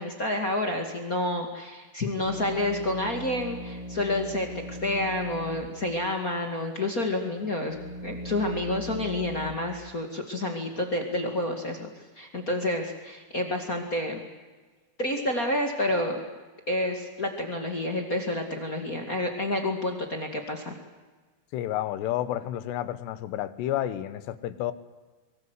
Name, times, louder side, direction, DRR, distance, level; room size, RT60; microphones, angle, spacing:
voice 1, 0.0-7.8 8.0-14.2 15.0-16.2 16.7-20.7, left 1 dB, 35° left, 3 dB, 1.5 m, -29 dB
sound 1, 2.2-5.7 6.0-6.1 6.8-9.5, equal, 35° right, 4.0 m, -39 dB
voice 2, 21.5-24.7, left 12 dB, 85° left, 14 dB, 3.3 m, -30 dB
23.5 x 23.0 x 8.1 m, 1.3 s
omnidirectional pair, 4.8 m